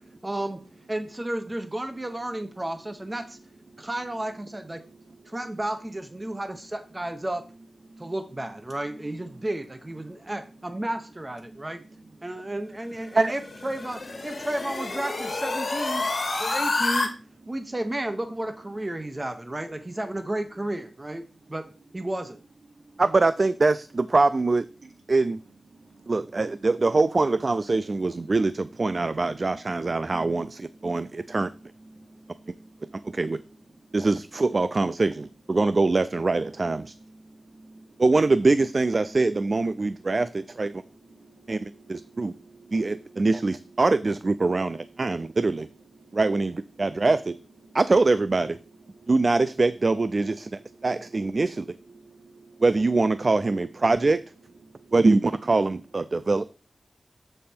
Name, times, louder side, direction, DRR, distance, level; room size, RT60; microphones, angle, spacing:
voice 1, 0.2-0.6 0.9-3.4 3.8-4.8 5.3-7.5 8.0-11.8 12.2-16.1 16.4-17.1 17.5-22.4, right 1 dB, 20° right, 8 dB, 0.8 m, -32 dB
sound 1, 13.1-17.1, left 3 dB, 55° left, 1.6 m, -29 dB
voice 2, 23.0-24.7 25.1-25.4 26.1-31.5 33.0-33.4 33.9-35.1 35.5-36.9 38.0-40.8 41.5-42.3 42.7-45.7 46.1-47.4 47.7-48.6 49.1-51.8 52.6-54.2 54.9-56.5, right 3 dB, 45° right, 14 dB, 0.3 m, -23 dB
voice 3, 37.3-37.8 41.2-41.5 41.9-42.7 43.1-43.2 52.0-52.6, right 2 dB, 65° right, 3 dB, 2.0 m, -52 dB
7.5 x 5.4 x 4.3 m, 0.36 s
wide cardioid pair, 80°, 0 cm